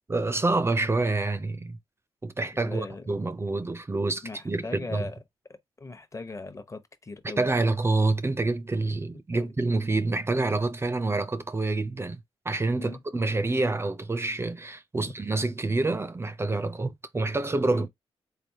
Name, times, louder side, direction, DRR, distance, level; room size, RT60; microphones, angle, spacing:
voice 1, 0.1-1.8 2.2-5.1 7.2-12.2 12.5-17.9, right 2 dB, 25° right, 0.5 m, -27 dB
voice 2, 2.5-3.1 4.2-5.2 5.8-7.5 9.3-9.5 12.8-13.0 15.0-15.1 17.7-17.9, left 3 dB, 30° left, 0.9 m, -39 dB
3.9 x 3.3 x 2.7 m
cardioid pair, 75°, 11 cm